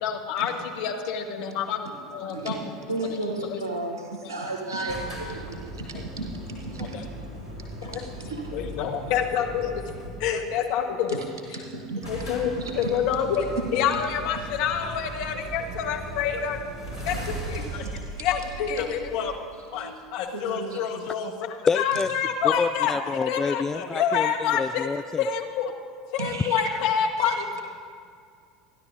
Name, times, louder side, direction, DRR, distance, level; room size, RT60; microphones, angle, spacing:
voice 1, 0.0-2.7 3.1-3.2 3.5-3.6 4.2-4.3 6.8-7.0 7.8-8.0 8.5-9.8 10.2-11.2 11.5-11.6 12.1-13.5 13.7-16.6 17.0-19.3 19.7-24.9 25.2-25.7 26.1-27.6, left 8 dB, 55° left, 3 dB, 1.4 m, -27 dB
voice 2, 2.9-4.0 4.3-5.6 5.9-6.9 7.9-8.0 8.3-8.4 11.1-11.2 11.7-12.0 12.8-12.9 17.1-17.2 19.7-20.0 20.3-20.8 26.2-26.6 27.3-27.4, right 2 dB, 80° right, 1 dB, 1.1 m, -33 dB
sound 1, 4.9-10.4 11.4-11.5 11.7-11.8 12.0-19.5, right 1 dB, 90° left, 3.6 m, -38 dB
voice 3, 21.7-22.1 22.4-25.3 26.4-26.8, left 5 dB, 20° left, 15 dB, 0.3 m, -28 dB
29.0 x 10.5 x 2.7 m, 2.2 s
figure-of-eight pair, 75°, 2 cm